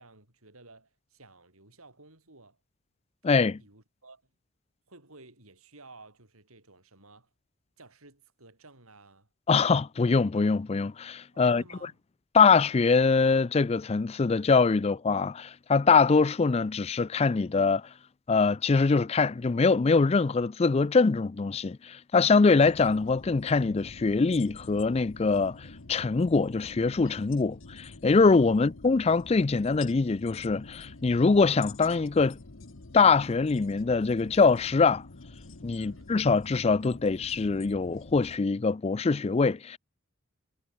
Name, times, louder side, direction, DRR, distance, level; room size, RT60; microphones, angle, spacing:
voice 1, 0.0-2.6 3.6-4.3 4.9-7.3 7.8-9.3 11.3-12.0 28.5-28.7 35.7-36.1, right 3 dB, 80° right, 6.9 m, -54 dB
voice 2, 3.2-3.6 9.5-11.6 12.3-17.9 18.3-32.4 32.9-35.0 35.6-39.8, left 4 dB, 30° left, 0.4 m, -23 dB
sound 1, 22.6-38.4, left 3 dB, 60° left, 1.2 m, -48 dB
head